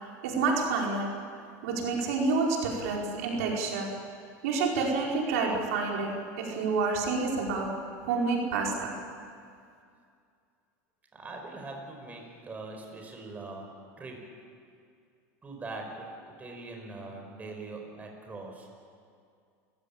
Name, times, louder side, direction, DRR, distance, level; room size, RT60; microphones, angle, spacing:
voice 1, 0.2-1.1 1.6-3.9 4.4-6.1 6.4-7.7 8.1-8.9, right 4 dB, 80° right, -1 dB, 4.9 m, -28 dB
voice 2, 11.1-14.3 15.4-18.7, right 2 dB, 20° right, 2 dB, 5.2 m, -42 dB
29.0 x 16.0 x 8.8 m, 2.3 s
supercardioid pair, 125°, 8 cm